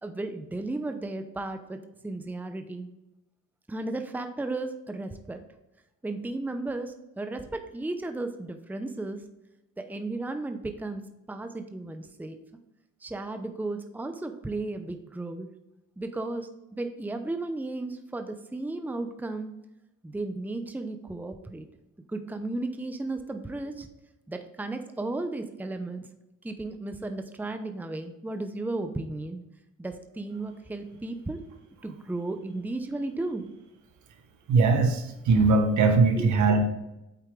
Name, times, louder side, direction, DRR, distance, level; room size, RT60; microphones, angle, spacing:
voice 1, 0.0-2.9 3.7-5.4 6.0-9.2 9.8-11.0 11.3-12.4 13.0-15.5 16.0-19.5 20.0-21.7 22.1-23.9 24.3-26.1 26.4-29.4 29.8-31.4 31.8-33.5 36.2-36.3, right 2 dB, 5° right, 7 dB, 0.7 m, -34 dB
voice 2, 34.5-36.6, right 3 dB, 70° right, 5 dB, 1.3 m, -21 dB
8.3 x 4.5 x 3.7 m, 0.93 s
cardioid pair, 90°, 30 cm